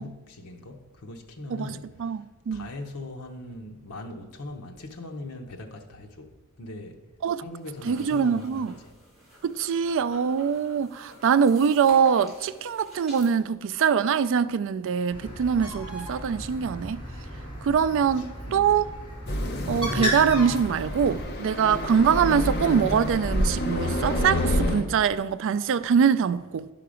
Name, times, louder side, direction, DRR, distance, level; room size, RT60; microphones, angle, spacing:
voice 1, 0.0-2.2 2.5-6.3 6.6-7.0 7.4-8.9 18.2-18.7, left 2 dB, 80° left, 0.9 m, -40 dB
voice 2, 1.5-2.7 7.2-7.4 7.9-8.7 9.4-17.0 17.6-18.9 19.7-26.7, right 7 dB, 60° right, 0.3 m, -23 dB
sound 1, 7.5-13.3, equal, ahead, 3.4 m, -48 dB
Bird, 15.1-21.2, equal, 25° left, 2.3 m, -34 dB
sound 2, 19.3-24.8, left 1 dB, 45° left, 0.9 m, -28 dB
11.0 x 5.7 x 5.0 m
head